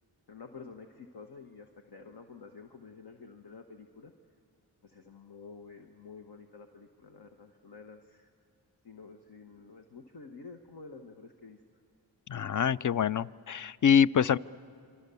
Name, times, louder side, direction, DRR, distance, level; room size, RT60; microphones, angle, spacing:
voice 1, 0.3-4.1 4.8-8.3 8.8-11.6, left 4 dB, 70° left, 5 dB, 1.2 m, -50 dB
voice 2, 12.3-14.4, left 8 dB, 50° left, 17 dB, 0.5 m, -25 dB
27.5 x 24.0 x 6.9 m, 2.5 s
cardioid pair, 55°, 41 cm